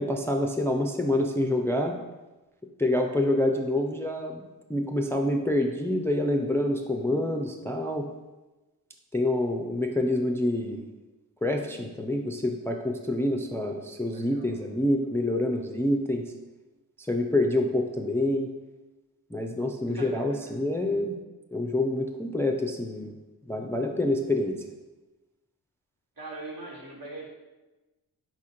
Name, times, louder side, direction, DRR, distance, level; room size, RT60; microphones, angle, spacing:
voice 1, 0.0-1.9 2.8-4.4 4.7-8.1 9.1-10.9 11.4-16.3 17.1-18.5 19.3-21.2 21.5-23.1 23.5-24.6, left 1 dB, 5° left, 3 dB, 0.3 m, -27 dB
voice 2, 14.1-14.6 19.9-20.5 26.2-27.3, right 2 dB, 65° right, -1 dB, 1.2 m, -42 dB
4.4 x 2.4 x 4.2 m, 1.1 s
supercardioid pair, 50°, 39 cm